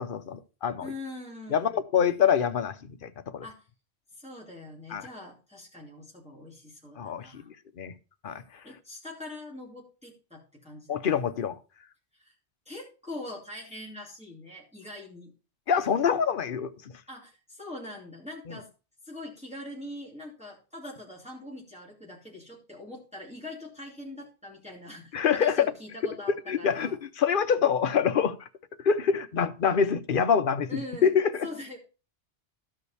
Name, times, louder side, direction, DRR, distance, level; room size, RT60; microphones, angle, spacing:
voice 1, 0.0-0.9 1.5-3.4 4.9-5.1 7.0-8.0 8.2-8.6 10.9-11.6 15.7-17.0 18.5-18.6 25.1-25.7 26.3-28.5 28.8-31.5, left 7 dB, 55° left, 0.9 m, -26 dB
voice 2, 0.8-1.8 3.4-3.6 4.1-7.5 8.6-11.1 12.1-12.3 12.7-15.3 17.1-18.7 19.0-27.0 30.7-31.1 31.4-31.8, left 1 dB, 5° right, 2.6 m, -43 dB
13.5 x 5.2 x 4.1 m
omnidirectional pair, 1.2 m